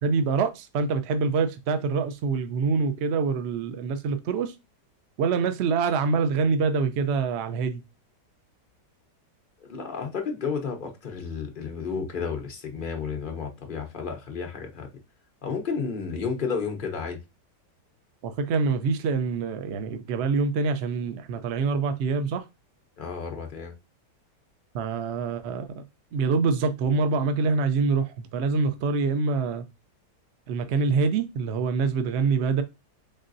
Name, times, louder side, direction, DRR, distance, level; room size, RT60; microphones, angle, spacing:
voice 1, 0.0-4.5 5.2-7.8 18.2-22.4 24.7-25.7 26.1-29.6 30.5-32.6, right 4 dB, 75° right, 0.6 m, -25 dB
voice 2, 9.6-14.9 15.4-17.2 23.0-23.7, left 5 dB, 45° left, 0.7 m, -32 dB
3.8 x 3.7 x 2.6 m
omnidirectional pair, 1.8 m